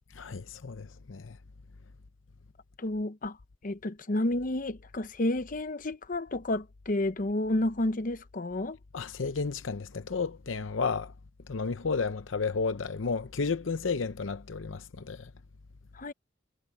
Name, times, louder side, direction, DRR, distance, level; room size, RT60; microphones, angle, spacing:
voice 1, 0.2-1.4 8.9-11.1 11.5-15.3, left 4 dB, 80° left, 0.7 m, -32 dB
voice 2, 2.8-3.4 3.6-8.8 16.0-16.1, left 1 dB, 45° left, 0.9 m, -30 dB
head